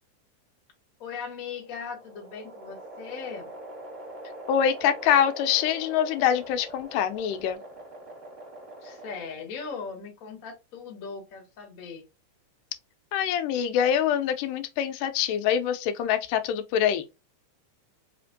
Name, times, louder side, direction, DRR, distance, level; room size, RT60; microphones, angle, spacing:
voice 1, 1.0-3.5 8.8-12.0, left 5 dB, 75° left, 0.8 m, -39 dB
sound 1, 1.3-9.6, right 1 dB, 60° right, 0.6 m, -43 dB
voice 2, 4.5-7.6 13.1-17.0, left 9 dB, 90° left, 2.2 m, -25 dB
4.9 x 2.5 x 2.5 m
omnidirectional pair, 3.6 m